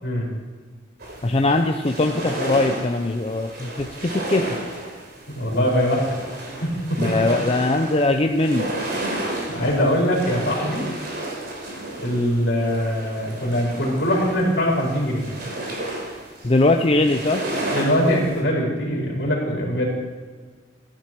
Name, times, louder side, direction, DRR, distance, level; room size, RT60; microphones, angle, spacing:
sound 1, 1.0-18.4, right 1 dB, 60° right, 3.7 m, -32 dB
voice 1, 1.2-3.7 4.1-4.4 7.0-8.7 16.4-17.4, left 2 dB, 30° left, 4 dB, 0.6 m, -20 dB
voice 2, 5.3-6.0 6.6-7.0 9.5-10.9 12.0-15.3 17.7-19.9, equal, 65° left, -4 dB, 4.5 m, -22 dB
14.5 x 10.5 x 4.6 m, 1.5 s
head